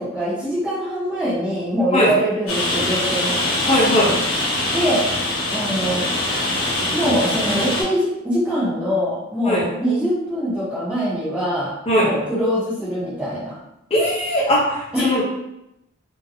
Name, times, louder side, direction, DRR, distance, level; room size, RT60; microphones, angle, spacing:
voice 1, 0.0-3.4 4.7-5.1 5.5-6.1 6.9-13.6 14.9-15.2, equal, 5° right, -13 dB, 0.7 m, -23 dB
Rain, 2.5-7.8, left 1 dB, 80° left, 1.0 m, -23 dB
voice 2, 3.7-4.1 9.4-9.6 11.9-12.1 13.9-15.2, left 1 dB, 30° left, -4 dB, 0.7 m, -18 dB
2.7 x 2.2 x 2.5 m, 0.85 s
head